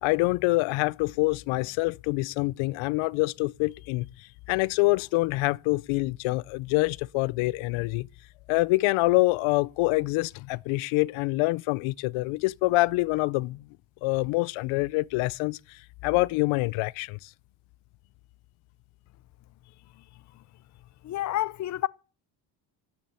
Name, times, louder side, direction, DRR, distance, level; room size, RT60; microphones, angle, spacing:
voice 1, 0.0-8.1 8.5-13.6 14.0-17.3, left 22 dB, 85° left, 0.5 m, -26 dB
voice 2, 21.0-21.9, left 14 dB, 40° left, 0.5 m, -29 dB
12.0 x 7.2 x 8.8 m
cardioid pair, 95°, 47 cm